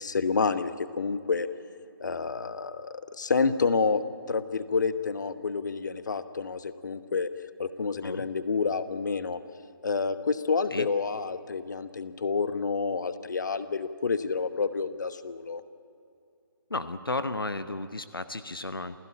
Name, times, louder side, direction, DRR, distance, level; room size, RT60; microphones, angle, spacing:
voice 1, 0.0-1.5 2.0-4.0 4.3-7.3 7.6-9.4 9.8-15.6, left 5 dB, 55° left, 12 dB, 1.2 m, -29 dB
voice 2, 16.7-19.0, left 2 dB, 75° left, 12 dB, 1.0 m, -33 dB
28.0 x 16.5 x 8.8 m, 2.5 s
figure-of-eight pair, 145°, 12 cm